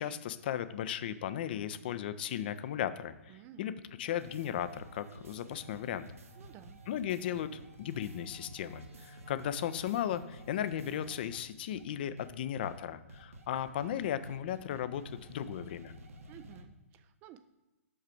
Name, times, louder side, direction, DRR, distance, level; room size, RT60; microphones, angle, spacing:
voice 1, 0.0-3.1 3.6-3.7 4.0-6.1 6.9-15.0 15.3-15.9, left 10 dB, 40° left, 12 dB, 0.5 m, -36 dB
voice 2, 3.3-3.7 6.4-6.8 16.3-17.4, right 12 dB, 20° right, 11 dB, 0.3 m, -53 dB
sound 1, 4.0-11.4 11.7-11.8 12.2-12.3 12.6-12.8 13.1-16.6, right 1 dB, 60° right, 1.1 m, -51 dB
5.8 x 5.4 x 4.9 m, 1.1 s
figure-of-eight pair, 120°, 8 cm